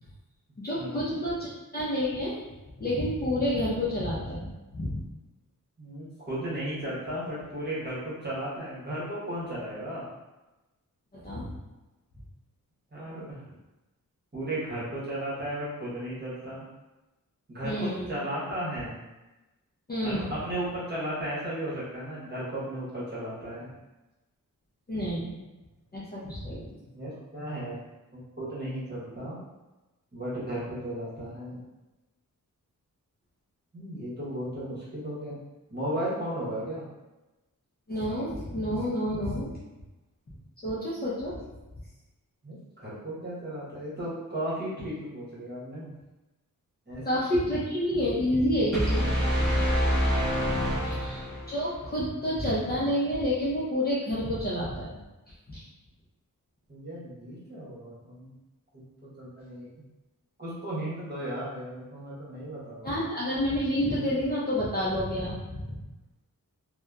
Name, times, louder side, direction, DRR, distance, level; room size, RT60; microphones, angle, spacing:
voice 1, 0.6-2.4 2.8-5.0 11.1-11.6 17.6-18.2 19.9-20.3 24.9-25.3 25.9-26.7 37.9-39.5 40.6-41.4 47.0-49.1 49.4-49.7 50.8-54.9 55.5-55.6 62.8-65.8, equal, 30° left, -7 dB, 0.5 m, -29 dB
voice 2, 5.8-10.0 12.9-13.6 14.3-16.6 17.5-19.0 20.0-23.7 26.2-26.4 26.8-27.8 28.1-29.4 30.1-31.6 33.7-35.4 35.7-36.8 42.4-45.9 46.9-47.0 50.6-51.2 56.7-58.3 58.7-59.7 60.4-63.1, right 1 dB, 30° right, -9 dB, 1.0 m, -35 dB
sound 1, 48.7-51.6, equal, ahead, 1.3 m, -26 dB
2.7 x 2.1 x 2.3 m, 1.0 s
wide cardioid pair, 135°, 34 cm